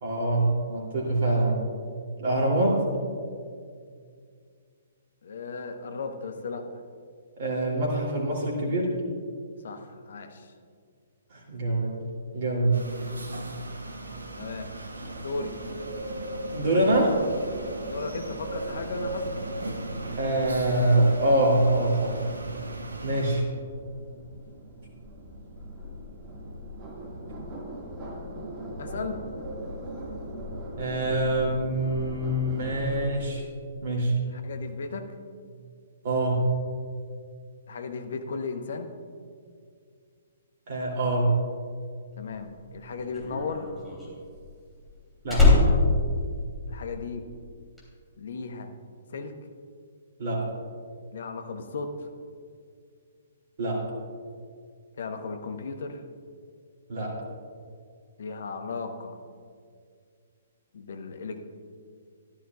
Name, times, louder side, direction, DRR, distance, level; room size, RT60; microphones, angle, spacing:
voice 1, 0.0-1.6 2.2-2.8 7.4-8.9 11.3-12.0 12.3-12.8 16.5-17.2 20.2-22.2 23.0-23.4 30.8-33.4 33.8-34.1 36.0-36.5 40.7-41.3 45.2-45.5 50.2-50.5 53.6-53.8 56.9-57.2, right 1 dB, 45° right, -2 dB, 2.9 m, -25 dB
voice 2, 5.2-6.8 9.6-10.5 14.4-14.7 15.2-15.5 17.8-19.4 28.8-29.2 34.3-35.1 37.7-38.9 42.2-43.7 46.7-47.3 48.2-48.7 49.1-49.3 51.1-52.1 55.0-56.0 58.2-59.2 60.7-61.4, left 4 dB, 55° left, 6 dB, 1.0 m, -35 dB
sound 1, 12.7-23.4, right 2 dB, 75° right, 1.0 m, -39 dB
sound 2, 14.0-33.1, right 1 dB, 25° right, 1.9 m, -39 dB
Slam, 42.3-47.1 47.4-47.8, left 3 dB, ahead, 3.0 m, -23 dB
14.5 x 11.5 x 2.4 m, 2.2 s
figure-of-eight pair, 125°, 0 cm